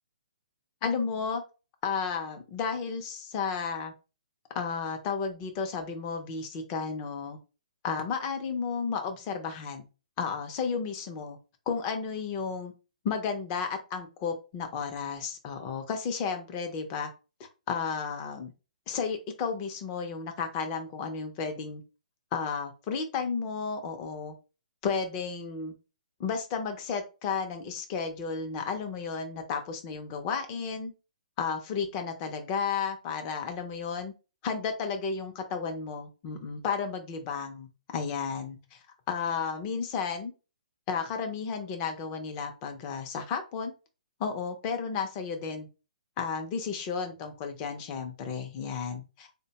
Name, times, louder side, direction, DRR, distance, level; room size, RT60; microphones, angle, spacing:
voice 1, 0.8-1.4 1.8-3.9 4.5-7.4 7.8-9.8 10.2-11.4 11.7-12.7 13.0-17.1 17.7-18.5 18.9-21.8 22.3-24.3 24.8-25.7 26.2-30.9 31.4-34.1 34.4-37.7 37.9-38.8 39.1-40.3 40.9-43.7 44.2-45.7 46.2-49.3, left 5 dB, 25° left, 5 dB, 0.5 m, -33 dB
3.6 x 2.2 x 2.8 m, 0.31 s
hypercardioid pair, 165°, 4 cm